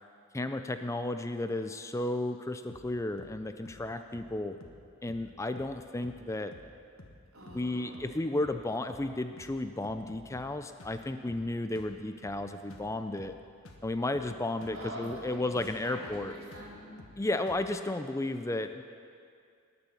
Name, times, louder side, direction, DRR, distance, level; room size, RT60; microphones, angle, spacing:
voice 1, 0.3-4.6 5.0-6.5 7.5-13.3 13.8-16.3 17.2-18.8, left 2 dB, 15° left, 8 dB, 0.4 m, -33 dB
sound 1, 2.7-2.9 3.2-3.4 3.7-3.9 4.1-4.4 4.6-4.8 5.1-5.3 5.6-5.8 6.0-6.3 6.5-6.7 7.0-7.2 7.5-7.7 7.9-8.2 8.4-8.6 8.9-9.1 9.4-9.6 9.8-10.5 10.8-11.0 11.3-11.5 11.8-12.0 12.2-12.4 12.7-12.9 13.2-13.4 13.7-13.9 14.1-14.4 14.6-14.8 15.1-15.3 15.6-15.8 16.0-16.3 16.5-16.7 17.0-17.2 17.5-17.7, left 1 dB, 85° left, 1.4 m, -52 dB
voice 2, 7.3-8.0 14.7-17.0, right 1 dB, 75° right, -5 dB, 3.9 m, -44 dB
19.5 x 6.9 x 7.1 m, 2.3 s
head